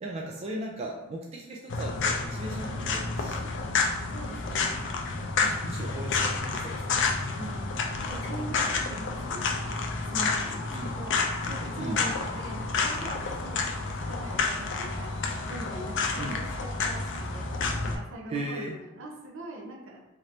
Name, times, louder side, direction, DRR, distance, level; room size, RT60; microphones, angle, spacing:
voice 1, 0.0-3.5 4.3-4.6 5.6-7.0 10.7-11.0 11.8-12.0 16.2-16.4 18.3-18.8, right 1 dB, 30° right, -2 dB, 0.3 m, -37 dB
sound 1, 1.7-18.0, left 4 dB, 60° left, 0.4 m, -30 dB
voice 2, 4.1-5.0 5.4-5.8 7.3-7.7 8.0-11.2 11.4-20.1, right 1 dB, 65° right, 0 dB, 0.6 m, -42 dB
2.9 x 2.5 x 3.2 m, 0.96 s
head